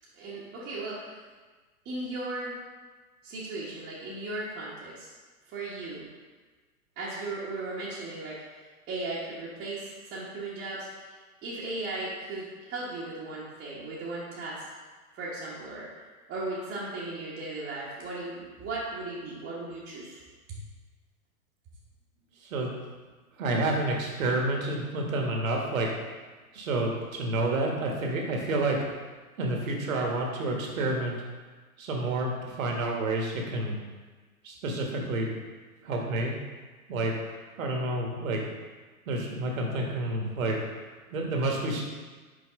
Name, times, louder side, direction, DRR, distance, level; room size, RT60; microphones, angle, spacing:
voice 1, 0.1-1.1 1.8-2.6 3.2-5.1 5.5-6.1 7.0-14.6 15.1-15.9 16.3-20.2 20.5-20.6, right 2 dB, 25° right, -8 dB, 1.2 m, -37 dB
voice 2, 22.4-22.7 23.4-25.9 26.5-28.8 29.4-31.1 31.8-33.8 34.4-35.3 35.8-36.3 36.9-37.1 37.6-38.4 39.1-41.8, right 2 dB, 65° right, 0 dB, 1.5 m, -29 dB
5.6 x 4.6 x 3.6 m, 1.3 s
hypercardioid pair, 110°, 44 cm